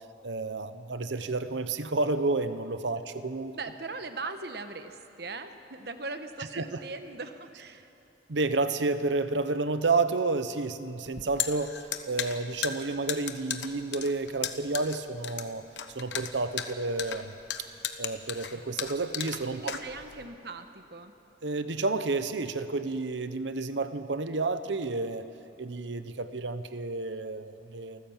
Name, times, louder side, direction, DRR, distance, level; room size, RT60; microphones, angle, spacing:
voice 1, 0.2-3.5 6.5-6.6 8.3-11.7 12.1-15.6 15.9-17.3 18.0-19.8 21.4-25.2 25.6-28.0, right 3 dB, 85° right, 11 dB, 0.9 m, -30 dB
voice 2, 3.5-7.9 19.5-21.1, right 3 dB, 60° right, 8 dB, 1.2 m, -40 dB
sound 1, 11.1-20.3, left 9 dB, 85° left, 1.1 m, -35 dB
28.5 x 14.5 x 7.3 m, 2.9 s
head